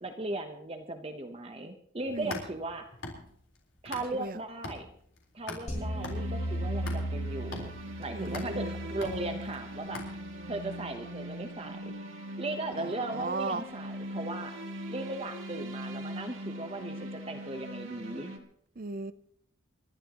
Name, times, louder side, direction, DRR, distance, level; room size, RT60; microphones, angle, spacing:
voice 1, 0.0-2.9 3.8-4.9 5.3-7.7 8.0-10.0 10.5-11.9 12.4-14.5 14.9-18.3, right 2 dB, 30° right, 0.9 m, -37 dB
sound 1, 2.0-4.3 4.6-10.6, left 2 dB, 75° left, 4.1 m, -43 dB
sound 2, 5.7-10.9, right 1 dB, 40° left, 5.4 m, -37 dB
sound 3, 5.7-18.4, equal, 85° right, 2.2 m, -41 dB
voice 2, 8.1-8.8 12.8-13.6 18.8-19.1, right 3 dB, 45° right, 0.6 m, -36 dB
28.5 x 12.0 x 3.0 m
head